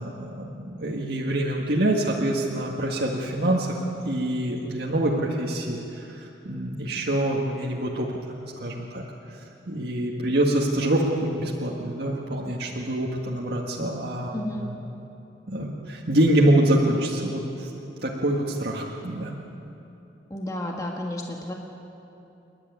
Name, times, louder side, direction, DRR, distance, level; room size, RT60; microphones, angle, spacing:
voice 1, 0.0-8.1 8.6-9.0 9.7-14.8 15.5-17.7 18.0-19.3, right 1 dB, 60° right, -3 dB, 1.9 m, -25 dB
voice 2, 14.3-14.7 20.3-21.5, left 1 dB, 20° left, -1 dB, 1.5 m, -31 dB
28.5 x 11.5 x 9.6 m, 2.9 s
head